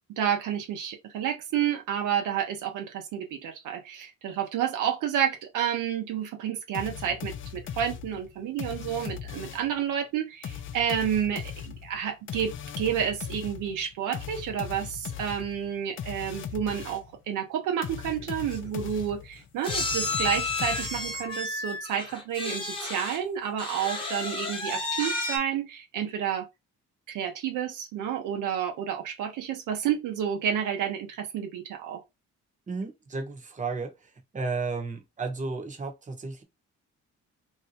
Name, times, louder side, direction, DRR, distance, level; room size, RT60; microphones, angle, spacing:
voice 1, 0.1-26.5 27.1-32.0, right 9 dB, 90° right, 0.8 m, -30 dB
sound 1, 6.7-9.8 10.4-17.2 17.8-21.3, left 9 dB, 45° left, 0.5 m, -39 dB
sound 2, 18.2-18.3 18.5-18.7 19.6-23.2 23.6-25.4, left 2 dB, 15° left, 1.1 m, -32 dB
voice 2, 32.7-36.4, right 4 dB, 25° right, 0.9 m, -33 dB
2.7 x 2.2 x 4.1 m
cardioid pair, 90°, 30 cm